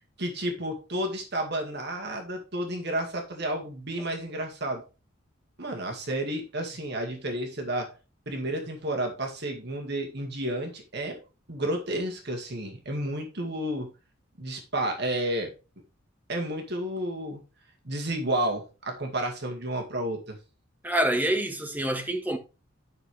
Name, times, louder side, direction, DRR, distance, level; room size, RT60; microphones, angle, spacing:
voice 1, 0.2-4.8 5.6-7.9 8.3-11.2 11.5-13.9 14.4-15.5 16.3-17.4 17.8-20.4, right 1 dB, 50° right, 2.1 m, -31 dB
voice 2, 20.8-22.4, right 1 dB, 10° right, 1.5 m, -26 dB
10.5 x 6.4 x 3.4 m
head